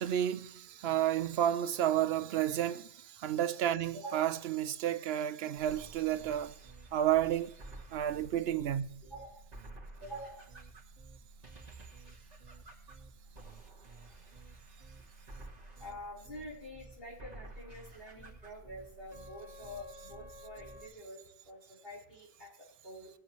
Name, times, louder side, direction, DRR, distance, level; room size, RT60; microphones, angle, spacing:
voice 1, 0.0-6.5 6.9-7.5 7.9-9.0, right 11 dB, 80° right, 0.8 m, -31 dB
voice 2, 3.9-4.3 9.1-9.4 10.0-10.4 15.8-22.5 22.8-23.1, equal, 65° left, 4.1 m, -47 dB
sound 1, 5.6-20.9, right 2 dB, 40° right, 1.9 m, -52 dB
21.0 x 7.9 x 3.1 m
omnidirectional pair, 1.0 m